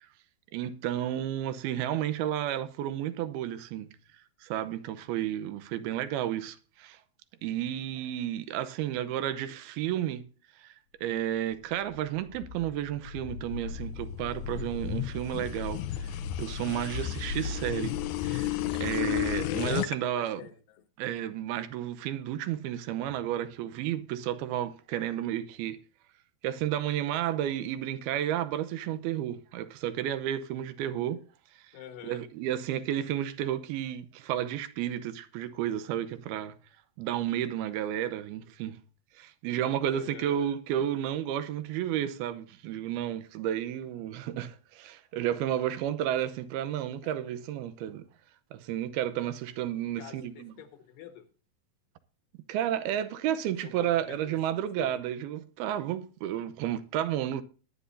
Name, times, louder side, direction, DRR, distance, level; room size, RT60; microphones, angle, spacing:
voice 1, 0.5-4.0 4.4-7.0 7.4-10.3 10.6-10.7 11.0-20.4 21.0-25.8 26.4-31.2 32.0-36.5 37.0-38.8 39.2-48.1 48.5-50.5 52.5-57.4, right 11 dB, 90° right, 2.8 m, -32 dB
sound 1, 11.9-20.0, left 11 dB, 90° left, 1.7 m, -33 dB
voice 2, 20.0-20.8 31.7-32.2 39.8-40.4 47.0-47.1 50.0-51.3 53.6-55.0, left 10 dB, 70° left, 2.7 m, -47 dB
19.5 x 10.0 x 2.6 m
omnidirectional pair, 4.3 m